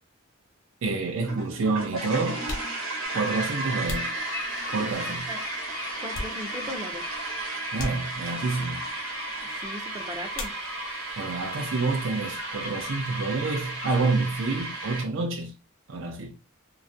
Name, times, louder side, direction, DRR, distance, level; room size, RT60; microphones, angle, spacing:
voice 1, 0.8-2.4 3.1-4.1 4.7-5.3 7.7-8.8 11.2-15.5 15.9-16.4, right 3 dB, 70° right, 0.5 m, -28 dB
sound 1, 1.2-15.0, right 2 dB, 90° right, 1.0 m, -34 dB
sound 2, 2.4-4.9 5.5-6.8 7.1-7.3 7.7-8.6 10.3-11.1 11.4-12.1 12.3-14.5, left 1 dB, 80° left, 0.8 m, -40 dB
sound 3, 3.0-14.7, left 4 dB, 50° left, 0.5 m, -42 dB
voice 2, 6.0-7.0 9.4-10.5, equal, 20° right, 0.4 m, -38 dB
2.3 x 2.1 x 2.6 m
head